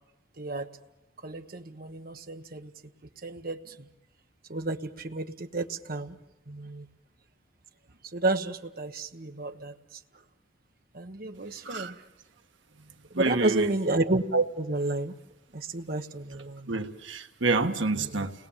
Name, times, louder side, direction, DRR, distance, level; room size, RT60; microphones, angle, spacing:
voice 1, 0.4-0.7 1.2-2.7 3.2-3.9 4.5-6.2 6.5-6.9 8.0-10.0 10.9-12.0 13.1-15.1 15.5-16.8 17.9-18.3, right 2 dB, 50° right, 1.2 m, -31 dB
voice 2, 13.1-13.7 16.7-18.3, right 3 dB, 75° right, 1.4 m, -28 dB
30.0 x 20.5 x 7.3 m
head